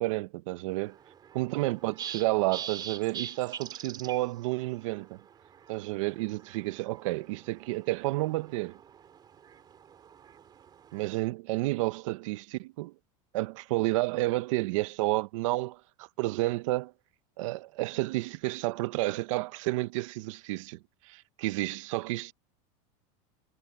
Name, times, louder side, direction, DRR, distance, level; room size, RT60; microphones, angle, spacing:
voice 1, 0.0-1.0 1.3-5.2 5.7-8.8 10.9-12.9 13.3-16.9 17.4-20.8 21.0-22.3, right 20 dB, 70° right, 0.8 m, -31 dB
sound 1, 0.7-11.2, right 8 dB, 25° right, 3.4 m, -45 dB
supercardioid pair, 150°, 17 cm